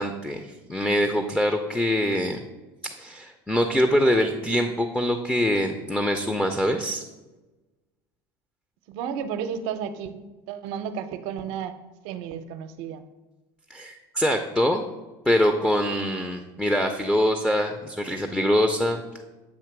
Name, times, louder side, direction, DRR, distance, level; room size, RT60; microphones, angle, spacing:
voice 1, 0.0-2.4 3.0-7.0 13.7-14.8 15.3-19.0, equal, 5° left, 6 dB, 0.6 m, -24 dB
voice 2, 8.9-10.2 10.5-11.8 12.0-13.0, right 8 dB, 70° right, 9 dB, 0.6 m, -32 dB
8.3 x 2.9 x 5.9 m, 1.1 s
supercardioid pair, 100°, 11 cm